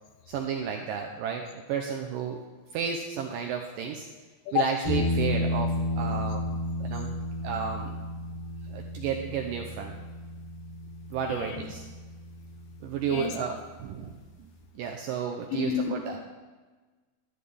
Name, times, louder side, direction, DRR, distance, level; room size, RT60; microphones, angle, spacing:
voice 1, 0.3-2.4 2.7-4.1 4.5-6.5 6.8-7.1 7.4-8.0 8.7-10.0 11.1-11.9 12.8-16.2, right 7 dB, 80° right, 2 dB, 2.0 m, -32 dB
sound 1, 4.8-13.8, left 1 dB, 45° left, 2.0 m, -33 dB
voice 2, 11.3-11.7 13.1-13.3 15.5-16.2, left 8 dB, 75° left, 4 dB, 2.7 m, -30 dB
11.5 x 11.0 x 3.4 m, 1.3 s
omnidirectional pair, 4.6 m